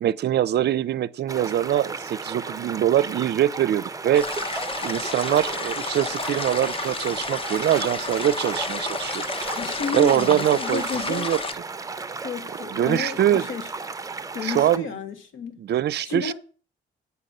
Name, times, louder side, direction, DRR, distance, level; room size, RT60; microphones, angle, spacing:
voice 1, 0.0-4.3 4.8-9.2 9.9-11.4 12.7-13.5 14.4-14.9 15.6-16.3, right 11 dB, 55° right, 0.5 m, -23 dB
sound 1, 1.3-14.8, right 4 dB, 15° right, 0.7 m, -34 dB
sound 2, 4.1-11.5, left 4 dB, 25° left, 0.7 m, -31 dB
voice 2, 9.5-11.3 12.2-13.7 14.3-15.6 16.0-16.3, left 5 dB, 80° left, 1.6 m, -31 dB
8.2 x 6.4 x 5.4 m
cardioid pair, 90°, 20 cm